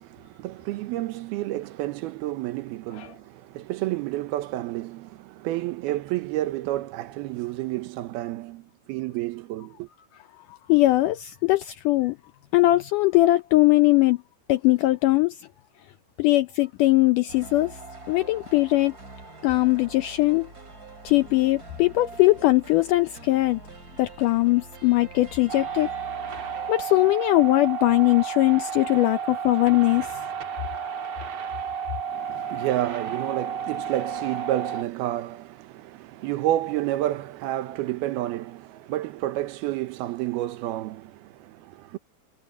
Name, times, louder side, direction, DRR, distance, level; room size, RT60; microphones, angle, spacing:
voice 1, 0.0-9.9 32.1-42.0, right 15 dB, 85° right, 2.8 m, -30 dB
voice 2, 10.7-12.2 12.5-14.2 14.5-15.4 16.2-17.7 18.1-18.9 19.4-20.5 21.1-23.6 24.0-25.9 26.7-30.1, left 18 dB, 80° left, 1.9 m, -20 dB
sound 1, 17.3-26.7, right 3 dB, 25° right, 4.6 m, -44 dB
sound 2, 25.5-34.8, right 6 dB, 50° right, 2.8 m, -32 dB
omnidirectional pair, 4.4 m